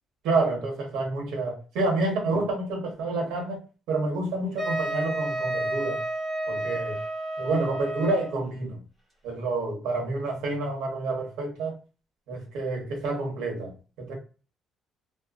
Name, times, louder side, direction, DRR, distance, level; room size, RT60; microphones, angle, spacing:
voice 1, 0.2-6.0 6.5-7.0 7.4-8.8 9.2-11.8 12.3-13.7 14.0-14.1, right 2 dB, 85° right, 1.2 m, -28 dB
Wind instrument woodwind instrument, 4.6-8.4, right 1 dB, 5° left, 0.9 m, -31 dB
2.8 x 2.0 x 2.4 m
cardioid pair, 180°, 0 cm